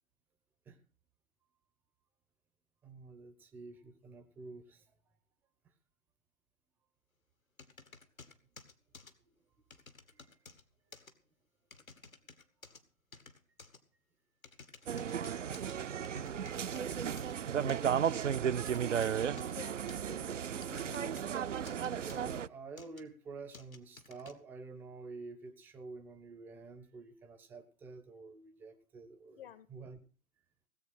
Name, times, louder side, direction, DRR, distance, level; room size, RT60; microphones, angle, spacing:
voice 1, 2.8-4.8 9.2-9.3 10.1-10.4 10.9-11.0 17.5-18.2 22.0-30.0, right 4 dB, 5° right, 8 dB, 0.6 m, -49 dB
sound 1, 7.6-9.1 9.7-10.6 10.9-11.1 11.7-12.8 13.1-13.8 14.4-15.7 16.0-17.3 17.7-17.9 18.3-19.5 19.9-21.4 21.7-22.3 22.8-23.0 23.5-24.3, left 4 dB, 80° left, 2.2 m, -54 dB
sound 2, 14.9-22.5, right 8 dB, 60° right, 0.7 m, -34 dB
voice 2, 19.4-21.1 29.4-29.7, left 9 dB, 45° left, 13 dB, 1.0 m, -52 dB
18.0 x 8.2 x 6.3 m, 0.37 s
figure-of-eight pair, 125°, 41 cm